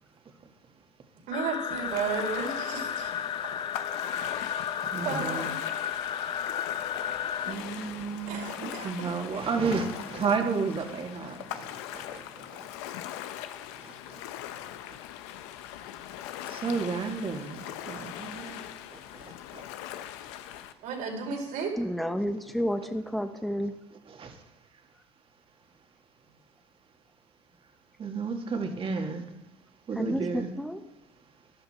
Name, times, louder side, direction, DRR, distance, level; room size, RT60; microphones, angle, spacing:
sound 1, 1.3-7.6, left 8 dB, 35° left, 0.5 m, -33 dB
voice 1, 1.3-3.1 4.6-5.6 8.3-8.9 20.8-21.7, right 5 dB, 70° right, 0 dB, 4.6 m, -34 dB
Ocean, 1.7-20.7, left 12 dB, 80° left, 0.8 m, -41 dB
voice 2, 4.8-5.5 7.5-12.2 13.8-14.2 16.4-18.6 18.9-19.6 24.2-24.3 28.0-29.3 29.9-30.5, right 5 dB, 40° right, 3 dB, 2.3 m, -32 dB
voice 3, 21.8-23.7 29.9-30.8, equal, ahead, 6 dB, 1.2 m, -30 dB
14.5 x 11.5 x 4.5 m, 0.86 s
supercardioid pair, 80°, 14 cm